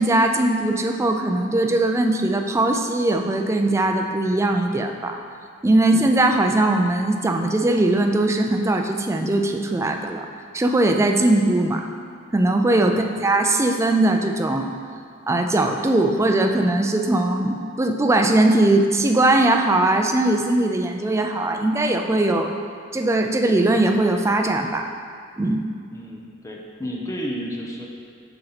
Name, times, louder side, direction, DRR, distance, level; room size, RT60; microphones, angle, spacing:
voice 1, 0.0-5.2 5.6-10.3 10.5-11.8 12.3-14.8 15.3-22.5 22.9-24.9 25.4-25.6, right 2 dB, 15° right, 4 dB, 0.4 m, -20 dB
voice 2, 12.8-13.1 25.9-27.9, equal, 15° left, -2 dB, 0.8 m, -32 dB
6.7 x 5.5 x 4.1 m, 2.2 s
head